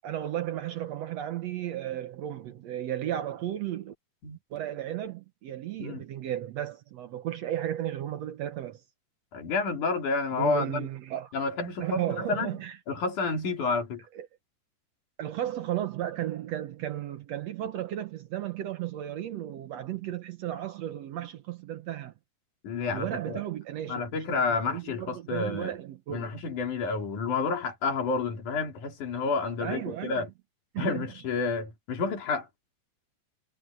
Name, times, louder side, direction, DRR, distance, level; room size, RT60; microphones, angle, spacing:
voice 1, 0.0-3.9 4.5-8.8 10.4-11.3 11.8-12.8 14.2-14.3 15.2-22.1 22.9-24.0 24.3-26.3 29.6-30.2 30.7-31.1, right 12 dB, 65° right, 1.8 m, -34 dB
voice 2, 9.3-10.9 11.3-12.6 12.9-14.0 22.6-23.4 23.9-25.8 26.1-30.3 30.8-32.5, left 4 dB, 70° left, 4.5 m, -30 dB
omnidirectional pair, 3.7 m